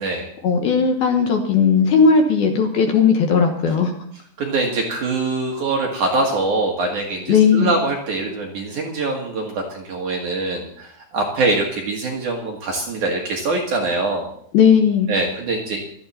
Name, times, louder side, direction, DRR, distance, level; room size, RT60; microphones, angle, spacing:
voice 1, 0.4-3.9 7.3-7.7 14.5-15.1, left 6 dB, 65° left, 4 dB, 2.8 m, -16 dB
voice 2, 4.4-14.3 15.1-15.8, right 2 dB, 55° right, 0 dB, 2.4 m, -23 dB
17.5 x 13.0 x 4.2 m, 0.66 s
omnidirectional pair, 5.2 m